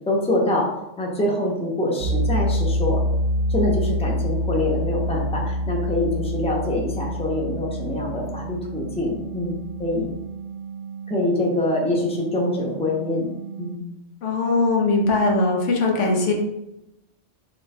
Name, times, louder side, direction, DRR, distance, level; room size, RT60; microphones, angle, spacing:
voice 1, 0.1-0.7 1.0-3.0 3.5-10.1 11.1-13.3 13.6-13.9, left 1 dB, 5° left, -2 dB, 0.8 m, -25 dB
sound 1, 2.0-13.8, equal, 75° right, 0.8 m, -27 dB
voice 2, 14.2-16.3, left 3 dB, 90° left, 0 dB, 1.3 m, -20 dB
3.9 x 3.2 x 4.3 m, 0.88 s
omnidirectional pair, 1.2 m